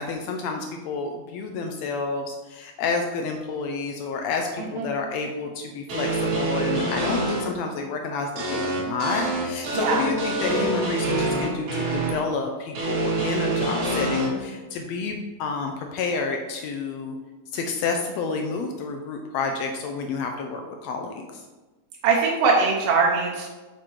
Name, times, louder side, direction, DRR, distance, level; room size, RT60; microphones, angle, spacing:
voice 1, 0.0-17.1 17.5-21.3, left 4 dB, 90° left, 3 dB, 1.5 m, -29 dB
voice 2, 4.6-4.9 9.7-10.1 22.0-23.5, right 4 dB, 85° right, -2 dB, 2.5 m, -22 dB
sound 1, 5.9-7.4 8.4-12.1 12.8-14.3, right 2 dB, 70° right, 3.2 m, -26 dB
7.3 x 4.4 x 4.5 m, 1.2 s
omnidirectional pair, 3.7 m